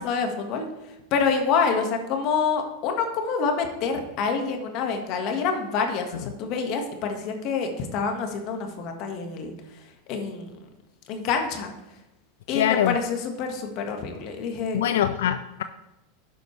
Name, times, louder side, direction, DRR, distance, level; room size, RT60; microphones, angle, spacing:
voice 1, 0.0-9.8 10.1-10.5 11.1-11.7 12.5-14.8, left 5 dB, 50° left, 4 dB, 1.6 m, -27 dB
voice 2, 12.5-13.0 14.7-15.6, left 10 dB, 75° left, 11 dB, 0.3 m, -23 dB
11.0 x 7.8 x 3.3 m, 0.98 s
hypercardioid pair, 100°, 0 cm